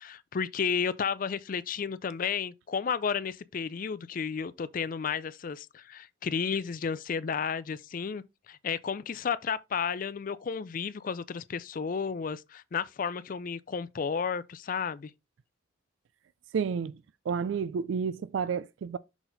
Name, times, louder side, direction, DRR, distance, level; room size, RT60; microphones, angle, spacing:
voice 1, 0.0-15.1, left 6 dB, 45° left, 0.4 m, -32 dB
voice 2, 16.5-17.0 17.3-19.0, right 6 dB, 75° right, 0.3 m, -30 dB
5.9 x 4.1 x 3.9 m
head